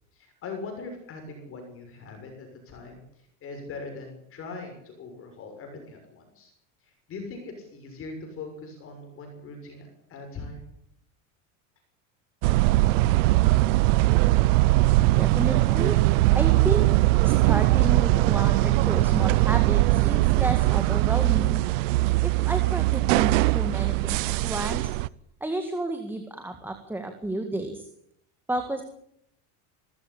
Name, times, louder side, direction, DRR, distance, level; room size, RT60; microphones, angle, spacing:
voice 1, 0.1-3.0 3.4-6.5 6.8-10.6, left 3 dB, 35° left, 4 dB, 6.5 m, -41 dB
sound 1, 12.4-25.1, right 19 dB, 85° right, 0.8 m, -21 dB
voice 2, 15.2-16.9 17.2-21.6 22.2-24.9 25.4-27.9 28.5-28.8, right 2 dB, 5° right, 6 dB, 1.9 m, -32 dB
24.5 x 14.5 x 8.8 m, 0.73 s
supercardioid pair, 140°, 37 cm